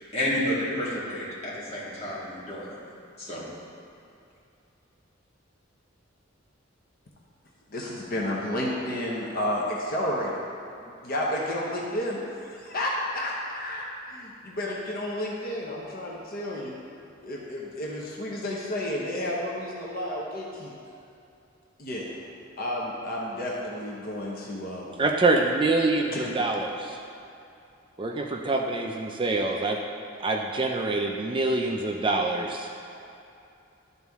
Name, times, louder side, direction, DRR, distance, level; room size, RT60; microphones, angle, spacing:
voice 1, 0.1-2.7 3.2-3.4, left 1 dB, 30° left, -7 dB, 1.8 m, -30 dB
voice 2, 7.7-10.4 10.8-13.8 14.1-16.8 17.2-20.7 21.8-22.2 22.6-25.0 26.1-26.5, left 1 dB, 50° left, -3 dB, 0.9 m, -31 dB
voice 3, 25.0-27.0 28.0-29.8 30.2-32.7, right 2 dB, 25° right, 1 dB, 0.4 m, -25 dB
12.0 x 4.1 x 3.5 m, 2.6 s
head